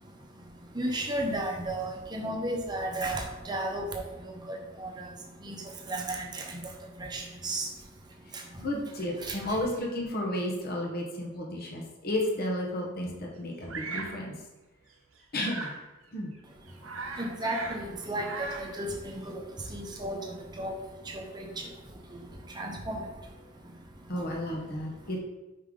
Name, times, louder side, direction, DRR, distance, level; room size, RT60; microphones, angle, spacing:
voice 1, 0.7-3.8 4.5-5.1 5.4-5.5 5.9-6.6 7.0-7.7 9.3-9.4 17.2-18.3 18.6-19.4 19.7-20.2 20.6-20.7 21.1-21.5 22.6-23.0, right 1 dB, 20° right, 1 dB, 0.9 m, -33 dB
voice 2, 8.6-14.3 15.3-15.7 16.1-16.3 24.1-25.2, left 1 dB, 50° left, -1 dB, 1.0 m, -32 dB
Bird vocalization bird call bird song, 13.7-14.2 15.4-15.8 16.3-16.4 16.7-17.9 18.1-18.8, right 4 dB, 75° right, 0.8 m, -38 dB
5.4 x 4.7 x 3.8 m, 1.1 s
head